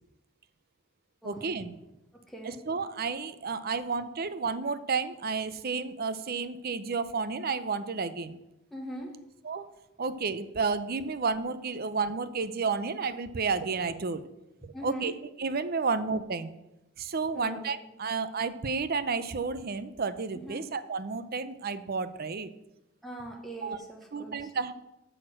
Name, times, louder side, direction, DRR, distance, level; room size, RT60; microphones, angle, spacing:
voice 1, 1.2-1.7 2.7-8.4 9.4-9.7 10.0-14.2 14.6-15.1 15.4-16.5 17.0-22.5 23.6-23.8 24.1-24.7, right 4 dB, 45° right, 13 dB, 0.6 m, -31 dB
voice 2, 2.1-2.6 8.7-9.2 14.7-15.1 17.3-17.9 20.5-20.6 23.0-24.5, right 1 dB, ahead, -1 dB, 1.0 m, -41 dB
8.8 x 6.6 x 6.3 m, 0.92 s
head